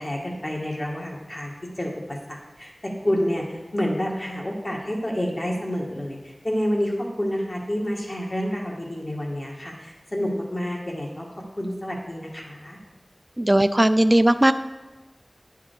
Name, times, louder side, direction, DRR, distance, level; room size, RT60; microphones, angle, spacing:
voice 1, 0.0-11.3 11.6-12.8, equal, 45° left, -1 dB, 1.8 m, -29 dB
voice 2, 13.4-14.5, right 1 dB, 25° right, 10 dB, 0.3 m, -17 dB
10.5 x 5.8 x 4.7 m, 1.2 s
wide cardioid pair, 45°, 0 cm